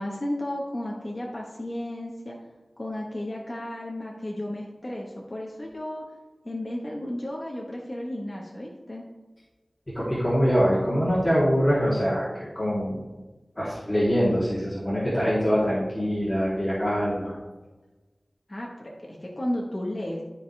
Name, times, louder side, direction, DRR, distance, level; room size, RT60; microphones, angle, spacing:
voice 1, 0.0-2.4 2.8-6.0 6.4-9.0 18.5-20.2, left 1 dB, 40° left, -3 dB, 1.4 m, -33 dB
voice 2, 9.9-13.0 13.5-17.3, equal, 25° left, -9 dB, 3.1 m, -24 dB
13.0 x 5.2 x 3.5 m, 1.2 s
wide cardioid pair, 50°, 0 cm